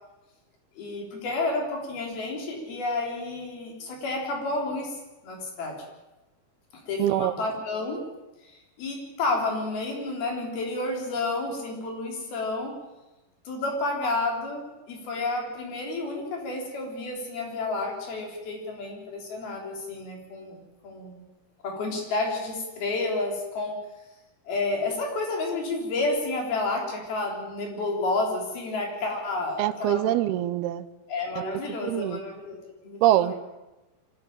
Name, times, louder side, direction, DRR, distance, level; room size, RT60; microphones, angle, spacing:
voice 1, 0.8-5.0 5.2-5.8 6.9-8.1 8.4-12.8 13.5-21.2 21.6-23.8 24.5-30.1 31.1-33.4, left 2 dB, 75° left, 1 dB, 5.6 m, -30 dB
voice 2, 7.0-7.3 29.6-30.9 31.4-32.2 33.0-33.3, right 13 dB, 85° right, 13 dB, 2.8 m, -24 dB
24.0 x 13.0 x 9.0 m, 1.0 s
omnidirectional pair, 4.4 m